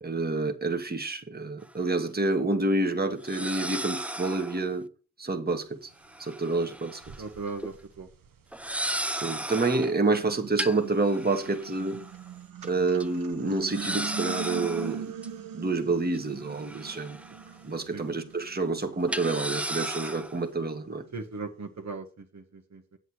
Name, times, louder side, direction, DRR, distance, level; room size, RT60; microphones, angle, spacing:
voice 1, 0.0-4.9 5.2-5.9 6.2-7.0 9.1-12.0 12.6-15.0 15.5-17.2 17.6-21.0, right 3 dB, 30° right, 1.7 m, -28 dB
sound 1, 1.6-1.7 3.2-4.7 6.0-7.2 7.5-7.7 8.5-10.0 10.6-12.2 12.6-12.7 13.0-13.1 13.7-15.3 16.1-17.6 17.9-18.0 19.1-20.4, right 1 dB, 5° right, 0.6 m, -35 dB
sound 2, 6.3-6.4 7.0-9.3 9.8-21.1, right 7 dB, 90° right, 1.2 m, -42 dB
voice 2, 7.2-8.1 17.9-18.1 21.1-23.0, right 4 dB, 55° right, 1.6 m, -38 dB
8.1 x 8.0 x 4.7 m
cardioid pair, 55°, 33 cm